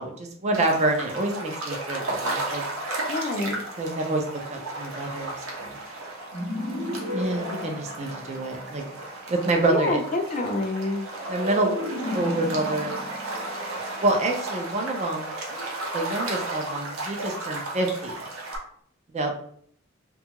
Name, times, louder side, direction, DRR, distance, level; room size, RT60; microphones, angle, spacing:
voice 1, 0.0-2.6 3.8-5.8 7.1-8.8 9.3-10.0 11.3-11.7 12.1-13.0 14.0-15.3 15.9-18.2 19.1-19.3, right 2 dB, 35° right, 2 dB, 0.4 m, -27 dB
sound 1, 0.5-18.6, right 2 dB, 85° right, 0.7 m, -34 dB
voice 2, 3.1-3.6 9.7-11.0, left 2 dB, 35° left, 4 dB, 0.4 m, -27 dB
sound 2, 6.3-8.7 11.1-14.4, left 2 dB, 55° right, 0.9 m, -34 dB
2.7 x 2.3 x 2.9 m, 0.63 s
head